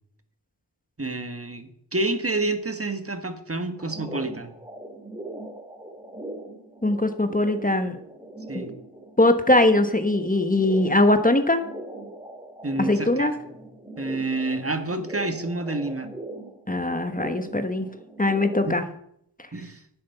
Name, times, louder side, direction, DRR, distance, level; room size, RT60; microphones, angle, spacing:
voice 1, 1.0-4.5 8.5-8.7 12.6-13.5 14.0-16.1 18.6-18.8 19.5-19.8, right 2 dB, 30° right, 8 dB, 1.6 m, -29 dB
sound 1, 3.8-18.7, right 1 dB, 10° right, 2.8 m, -40 dB
voice 2, 6.8-8.0 8.5-8.6 9.2-11.6 12.8-13.3 16.7-17.9 18.2-18.8, left 1 dB, 20° left, 8 dB, 1.3 m, -21 dB
11.0 x 8.6 x 5.6 m, 0.71 s
cardioid pair, 40°, 43 cm